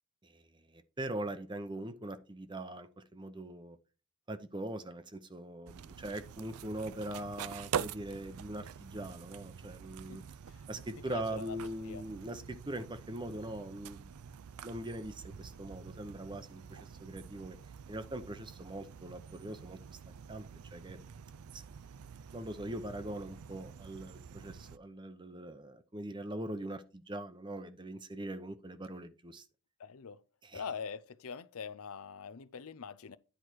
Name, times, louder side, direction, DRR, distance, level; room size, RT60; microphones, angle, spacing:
voice 1, 0.2-3.8 4.3-10.2 10.7-14.1 14.6-17.6 17.9-20.5 20.7-21.0 21.5-21.6 22.3-29.4 30.4-30.6, right 1 dB, 20° right, 0.7 m, -42 dB
sound 1, 5.7-24.8, right 7 dB, 85° right, 0.4 m, -46 dB
voice 2, 11.1-12.0 29.8-30.2 30.5-33.2, left 6 dB, 70° left, 0.5 m, -43 dB
10.5 x 4.8 x 4.5 m
head